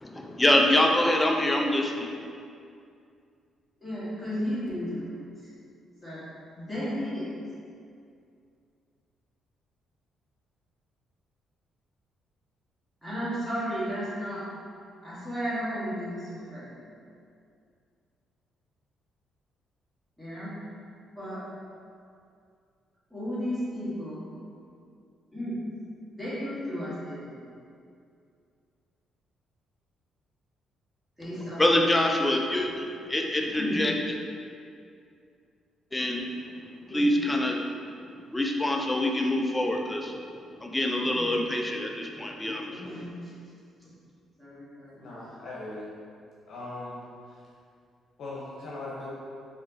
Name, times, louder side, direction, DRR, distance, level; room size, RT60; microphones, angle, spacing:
voice 1, 0.0-2.1 31.6-34.0 35.9-36.3 36.9-37.6 38.3-40.2 40.6-42.9, left 1 dB, 10° left, 1 dB, 0.3 m, -25 dB
voice 2, 3.8-5.1 6.0-6.2 6.5-7.3 13.0-14.4 15.0-17.0 20.2-20.5 21.1-21.4 23.1-24.3 25.3-25.6 26.1-27.4 31.2-31.8 33.4-33.8 36.9-37.0 41.2-41.3 42.7-43.3 44.4-45.1, equal, 10° right, -11 dB, 1.5 m, -34 dB
voice 3, 44.9-45.9 46.5-46.9 47.3-47.4 48.2-49.1, left 2 dB, 60° left, -6 dB, 0.8 m, -39 dB
4.8 x 2.8 x 2.7 m, 2.4 s
cardioid pair, 140°, 0 cm